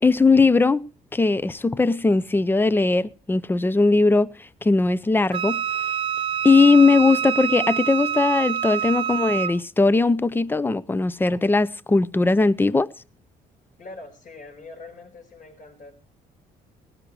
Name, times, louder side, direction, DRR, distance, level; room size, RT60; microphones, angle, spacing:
voice 1, 0.0-4.3 4.6-5.6 6.4-12.9, left 3 dB, 10° left, 0.5 m, -19 dB
Wind instrument woodwind instrument, 5.3-9.6, right 8 dB, 30° right, 1.0 m, -26 dB
voice 2, 13.8-15.9, left 3 dB, 55° left, 4.9 m, -43 dB
18.5 x 10.0 x 4.8 m
cardioid pair, 110°, 17 cm